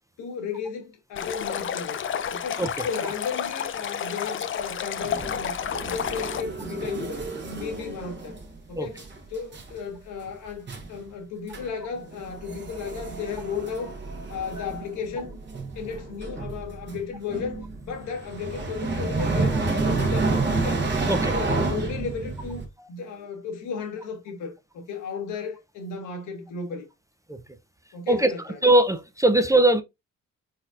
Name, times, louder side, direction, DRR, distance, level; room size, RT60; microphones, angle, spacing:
voice 1, 0.2-2.0 2.3-8.4 8.7-9.0 9.3-14.0 14.3-15.4 15.8-20.8 21.2-22.6 22.9-26.9 27.9-28.6, left 5 dB, 85° left, 1.3 m, -34 dB
Stream, 1.2-6.4, left 8 dB, 40° left, 0.5 m, -31 dB
sound 1, 5.0-8.6 8.9-9.2 9.5-9.8 10.2-10.3 10.7-11.0 11.5-11.7 12.0-22.7, right 3 dB, 35° right, 1.2 m, -30 dB
voice 2, 28.6-29.8, right 1 dB, 10° right, 0.4 m, -20 dB
4.0 x 4.0 x 2.4 m
cardioid pair, 90°, 30 cm